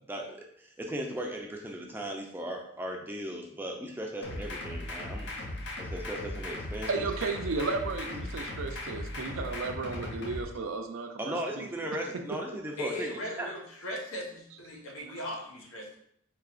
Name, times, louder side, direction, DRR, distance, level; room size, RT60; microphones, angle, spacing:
voice 1, 0.1-5.3 5.8-7.1 11.2-13.5, right 1 dB, 10° right, 1 dB, 0.4 m, -37 dB
sound 1, 4.2-10.4, left 1 dB, 55° left, 0.6 m, -38 dB
voice 2, 6.9-11.7, right 4 dB, 75° right, 5 dB, 0.5 m, -34 dB
voice 3, 12.8-16.0, left 1 dB, 85° left, 0 dB, 0.9 m, -38 dB
4.8 x 2.8 x 2.4 m, 0.70 s
head